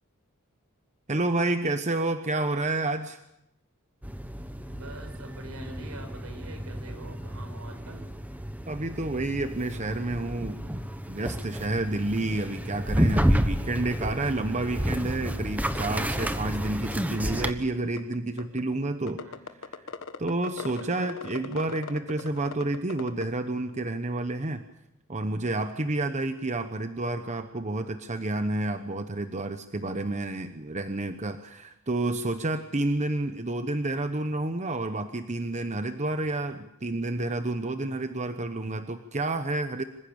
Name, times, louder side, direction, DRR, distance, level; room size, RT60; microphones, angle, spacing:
voice 1, 1.1-3.2 8.7-19.2 20.2-24.6 25.1-39.8, right 2 dB, 30° right, 9 dB, 1.0 m, -30 dB
sound 1, 4.0-17.5, equal, 5° right, 1.2 m, -31 dB
voice 2, 4.7-8.1 19.2-19.4 20.6-20.9, right 2 dB, 75° right, 6 dB, 4.9 m, -45 dB
sound 2, 15.8-15.9 16.2-16.3 16.6-16.7 16.9-17.5 18.0-18.6 19.1-23.2, left 4 dB, 60° left, 1.4 m, -38 dB
26.0 x 15.5 x 8.7 m, 0.85 s
head